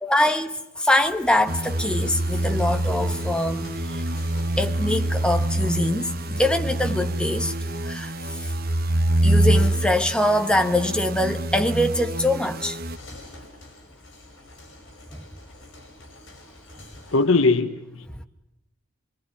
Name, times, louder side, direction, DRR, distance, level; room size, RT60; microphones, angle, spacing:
voice 1, 0.0-4.0 4.6-7.5 7.8-8.5 9.2-12.8, left 1 dB, 5° left, 1.2 m, -23 dB
sound 1, 0.9-17.3, left 1 dB, 60° left, 6.5 m, -48 dB
sound 2, 1.5-13.0, right 1 dB, 45° right, 1.0 m, -25 dB
voice 2, 17.1-18.2, left 3 dB, 75° left, 1.2 m, -21 dB
24.5 x 23.5 x 9.8 m
head